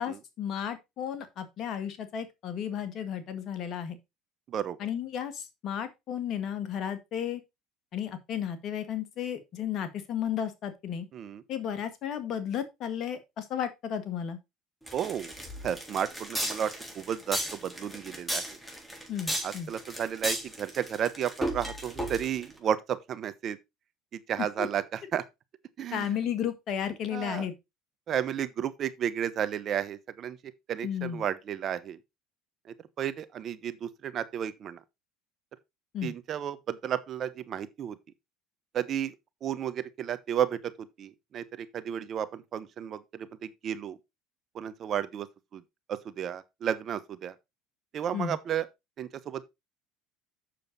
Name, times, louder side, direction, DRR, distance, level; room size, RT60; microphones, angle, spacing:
voice 1, 0.0-4.0 4.8-7.4 7.9-11.1 11.5-14.4 19.1-19.7 24.6-24.7 25.9-27.5 30.8-31.2 35.9-36.1 48.1-48.4, left 9 dB, 55° left, 1.9 m, -33 dB
sound 1, 14.9-22.5, right 1 dB, 5° left, 3.8 m, -35 dB
voice 2, 14.9-15.3 15.6-18.4 19.4-23.6 24.1-25.2 25.8-26.2 27.1-27.5 28.1-30.4 30.7-32.0 33.0-34.8 36.0-38.0 38.7-39.1 39.4-40.7 41.0-44.0 44.5-45.3 45.5-45.6 45.9-47.3 47.9-48.7 49.0-49.4, right 9 dB, 45° right, 1.0 m, -32 dB
7.7 x 6.7 x 4.1 m
hypercardioid pair, 80°, 0 cm